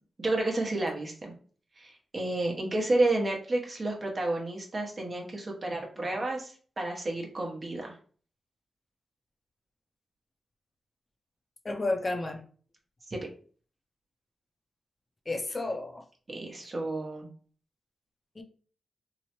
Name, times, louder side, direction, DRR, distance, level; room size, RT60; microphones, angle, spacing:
voice 1, 0.2-1.3 1.8-8.0 13.1-13.3 16.3-17.3, right 2 dB, 40° right, 0.9 m, -31 dB
voice 2, 11.6-12.4 15.3-16.0 18.4-18.5, left 2 dB, 35° left, 0.5 m, -31 dB
2.8 x 2.1 x 2.9 m
cardioid pair, 50°, 0 cm